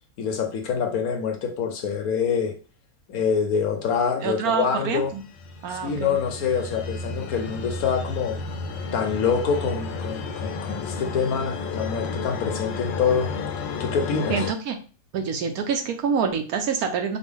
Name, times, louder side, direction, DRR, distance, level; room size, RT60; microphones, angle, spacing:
voice 1, 0.2-2.5 3.1-5.1 5.7-8.4 8.9-13.3 13.8-14.4, left 6 dB, 65° left, 1.0 m, -25 dB
voice 2, 4.2-5.2 5.6-6.2 14.3-14.8 15.1-17.2, right 6 dB, 70° right, 0.9 m, -26 dB
sound 1, 5.0-14.5, left 4 dB, 85° left, 1.3 m, -32 dB
5.0 x 2.2 x 3.5 m
omnidirectional pair, 1.9 m